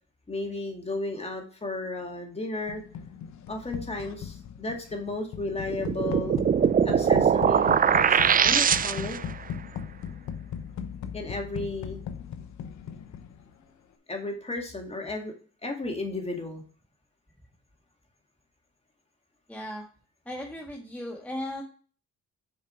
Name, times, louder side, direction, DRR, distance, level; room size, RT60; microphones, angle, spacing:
voice 1, 0.3-2.8 3.5-6.4 6.9-9.2 11.1-12.0 14.1-15.3 15.6-16.6, left 2 dB, 20° left, 2 dB, 2.1 m, -34 dB
sound 1, 2.7-13.6, left 8 dB, 70° left, 0.9 m, -38 dB
sound 2, 5.7-9.3, right 7 dB, 30° right, 0.4 m, -22 dB
voice 2, 19.5-19.8 20.2-21.6, left 1 dB, 5° left, -1 dB, 1.6 m, -36 dB
7.1 x 4.9 x 4.4 m, 0.40 s
cardioid pair, 90°, 30 cm